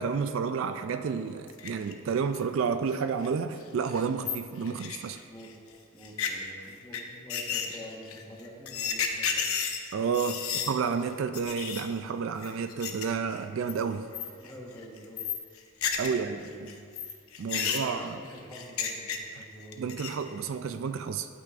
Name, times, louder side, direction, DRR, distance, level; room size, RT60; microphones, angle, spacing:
voice 1, 0.0-5.2 9.9-14.1 16.0-16.5 17.4-18.2 19.8-21.3, right 6 dB, 65° right, 9 dB, 0.3 m, -30 dB
sound 1, 1.5-1.9 2.3-2.4 2.9-3.0 3.2-3.3 3.6-3.7 3.9-5.5 6.0-6.3 6.9-7.0 7.3-10.7 11.0-11.1 11.3-11.9 12.4-13.0 13.3-13.7 14.1-14.5 14.8-16.2 16.5-19.4 19.7-20.3, left 7 dB, 75° left, 0.7 m, -32 dB
voice 2, 5.9-9.5 10.4-10.5 14.4-15.3 15.9-16.8 17.5-20.3, equal, 10° left, -4 dB, 1.2 m, -47 dB
12.0 x 8.3 x 2.5 m, 2.2 s
head